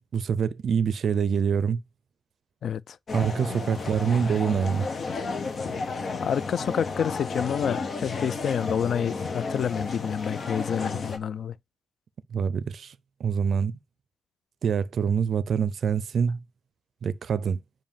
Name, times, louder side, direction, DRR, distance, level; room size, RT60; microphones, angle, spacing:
voice 1, 0.1-1.8 3.1-4.9 12.3-12.9 13.2-13.7 14.6-16.4 17.0-17.6, right 7 dB, 80° right, 0.5 m, -25 dB
voice 2, 2.6-3.0 6.2-11.5, left 8 dB, 90° left, 0.3 m, -28 dB
sound 1, 3.1-11.2, left 4 dB, 60° left, 0.8 m, -32 dB
7.4 x 2.6 x 5.1 m
wide cardioid pair, 105°, 0 cm